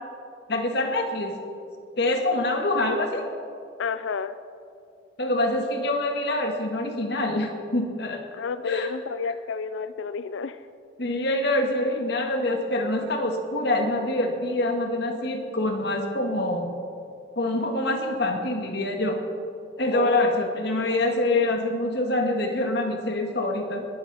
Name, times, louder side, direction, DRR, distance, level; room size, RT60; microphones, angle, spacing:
voice 1, 0.5-1.4 2.0-3.2 5.2-8.2 8.7-8.9 11.0-16.7 17.4-19.2 19.8-23.9, left 1 dB, 60° left, 3 dB, 1.8 m, -25 dB
voice 2, 3.8-4.3 8.3-10.6 19.9-20.5, left 5 dB, 75° left, 12 dB, 0.4 m, -30 dB
21.5 x 12.5 x 4.2 m, 2.5 s
head